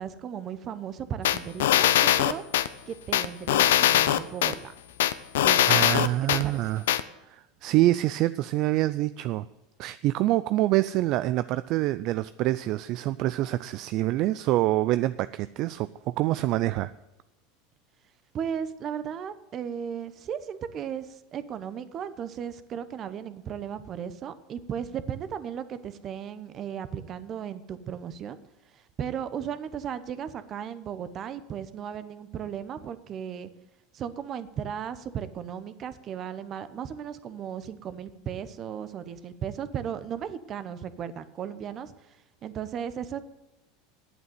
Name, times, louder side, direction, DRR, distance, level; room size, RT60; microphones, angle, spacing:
voice 1, 0.0-2.4 2.9-4.7 5.4-6.1 6.4-6.6 18.3-28.4 28.7-33.5 33.9-41.9 42.4-43.2, right 8 dB, 40° right, 13 dB, 0.9 m, -36 dB
sound 1, 1.3-2.7 3.1-4.5 5.0-6.4 6.9-7.0, left 12 dB, 85° left, 0.6 m, -21 dB
voice 2, 5.7-6.8 7.3-9.5 9.8-16.9, right 16 dB, 55° right, 14 dB, 0.3 m, -26 dB
9.1 x 8.1 x 9.3 m, 0.97 s
supercardioid pair, 110°, 0 cm